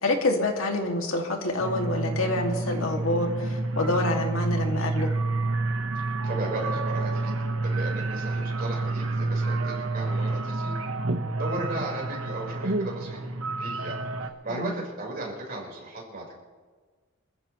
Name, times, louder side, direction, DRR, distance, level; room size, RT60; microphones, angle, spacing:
voice 1, 0.0-5.1 14.5-14.7, left 2 dB, 85° left, 2 dB, 2.4 m, -27 dB
sound 1, 1.6-14.3, right 2 dB, 85° right, 1.3 m, -29 dB
voice 2, 6.2-7.3 7.6-10.7 11.4-13.2 13.6-16.4, right 2 dB, 45° right, -2 dB, 4.8 m, -36 dB
26.5 x 14.5 x 3.2 m, 1.5 s
head